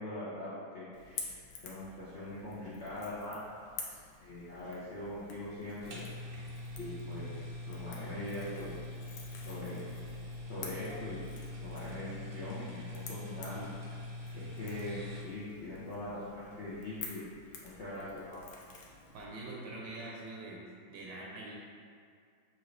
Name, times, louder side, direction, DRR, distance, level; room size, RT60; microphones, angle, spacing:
voice 1, 0.0-1.3 1.6-3.6 3.9-6.0 6.8-8.8 9.5-9.9 10.5-11.2 11.6-14.0 14.3-17.2 17.6-18.4, left 1 dB, 60° left, -10 dB, 0.7 m, -42 dB
Crackle / Crack, 0.9-19.3, left 4 dB, 85° left, 1.4 m, -50 dB
sound 1, 5.8-15.2, left 1 dB, 50° right, 1.0 m, -43 dB
voice 2, 19.1-20.6 20.9-21.5, right 2 dB, 75° right, -3 dB, 1.4 m, -44 dB
5.9 x 2.6 x 3.1 m, 2.2 s
omnidirectional pair, 2.1 m